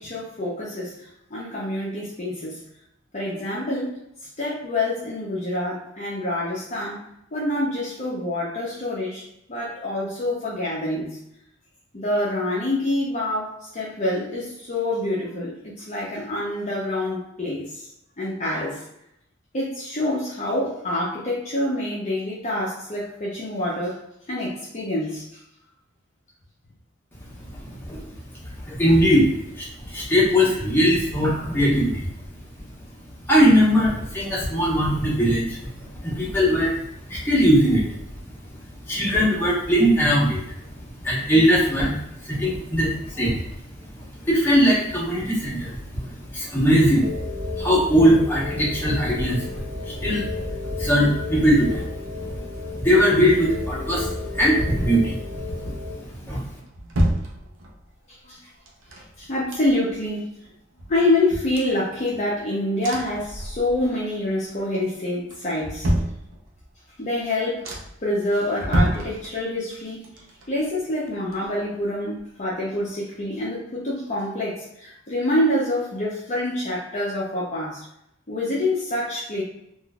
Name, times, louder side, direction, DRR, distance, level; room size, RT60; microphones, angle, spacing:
voice 1, 0.0-2.6 3.1-4.0 4.4-7.0 7.3-11.2 11.9-17.9 18.2-18.8 19.5-25.4 27.7-27.8 58.1-58.4 59.2-60.3 60.9-65.9 67.0-67.7 68.0-70.0 70.5-77.8 78.3-79.4, left 1 dB, 35° left, -6 dB, 0.7 m, -26 dB
voice 2, 27.3-32.4 33.1-56.6, equal, 10° left, -6 dB, 1.0 m, -21 dB
sound 1, 47.0-56.0, left 3 dB, 45° right, 1.5 m, -33 dB
sound 2, 56.2-57.9 58.7-60.1 60.4-60.5 60.8-62.4 62.8-64.0 64.3-64.8 65.3-66.7 67.2-67.3 67.6-68.1 68.5-69.7 70.0-71.9 72.2-72.3, equal, 85° right, 0.7 m, -29 dB
3.7 x 2.6 x 2.3 m, 0.78 s
head